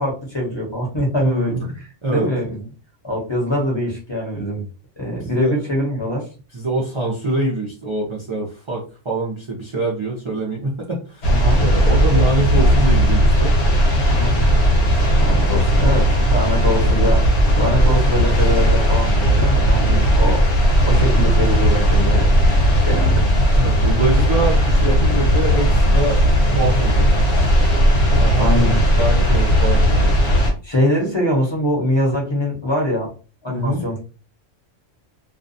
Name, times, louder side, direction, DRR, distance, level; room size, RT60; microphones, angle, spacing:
voice 1, 0.0-1.6 2.1-2.6 3.0-4.6 5.0-6.3 11.3-11.6 14.0-14.4 15.2-17.2 17.5-20.4 20.8-23.3 28.4-28.8 30.6-33.1 33.4-34.0, equal, 25° left, -2 dB, 0.8 m, -23 dB
voice 2, 1.2-1.8 2.0-2.3 5.2-5.6 6.5-13.5 19.8-20.1 23.5-26.3 26.5-27.1 28.1-30.2 33.5-33.8, right 1 dB, 40° right, -3 dB, 0.4 m, -24 dB
sound 1, 11.2-30.5, equal, 60° left, 1.2 m, -16 dB
2.5 x 2.2 x 2.6 m, 0.34 s
omnidirectional pair, 1.3 m